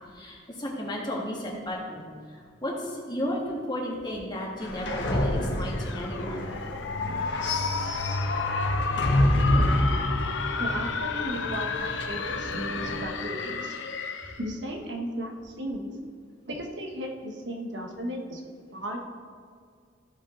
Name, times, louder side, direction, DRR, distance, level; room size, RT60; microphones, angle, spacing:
voice 1, 0.1-2.0 2.3-6.4, left 1 dB, 25° left, -3 dB, 1.7 m, -33 dB
sound 1, 4.6-13.0, left 1 dB, 70° left, 1.3 m, -28 dB
sound 2, 5.6-14.5, left 5 dB, 85° left, 0.7 m, -32 dB
voice 2, 9.5-9.8 10.6-13.7 14.4-15.9 16.5-18.4 18.7-19.0, right 1 dB, 70° right, 1 dB, 1.2 m, -35 dB
15.0 x 5.2 x 3.9 m, 2.1 s
head